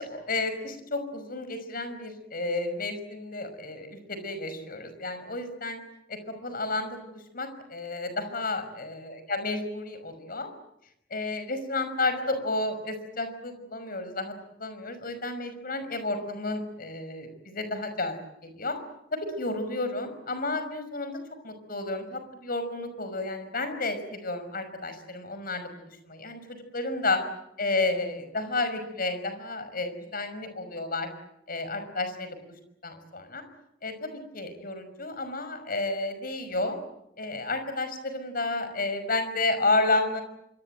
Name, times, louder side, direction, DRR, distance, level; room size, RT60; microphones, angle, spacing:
voice 1, 0.0-5.8 6.1-10.5 11.1-14.3 14.6-18.2 18.4-18.8 19.1-27.2 27.6-31.1 31.5-32.5 32.8-33.4 33.8-36.8 37.2-40.2, left 2 dB, 50° left, 10 dB, 5.7 m, -31 dB
26.0 x 24.5 x 9.1 m, 0.80 s
head